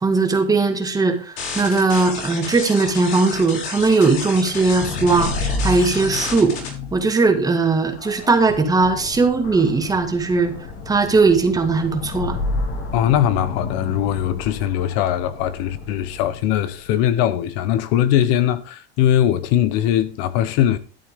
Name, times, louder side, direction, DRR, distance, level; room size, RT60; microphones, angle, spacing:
voice 1, 0.0-6.6 6.9-10.5 10.9-12.4, right 3 dB, 10° right, 1.8 m, -19 dB
sound 1, 1.4-6.7, left 5 dB, 75° left, 6.0 m, -31 dB
sound 2, 4.4-17.0, left 3 dB, 35° left, 2.5 m, -31 dB
voice 2, 12.9-20.8, left 11 dB, 50° left, 0.9 m, -20 dB
13.0 x 9.8 x 3.6 m
supercardioid pair, 135°, 32 cm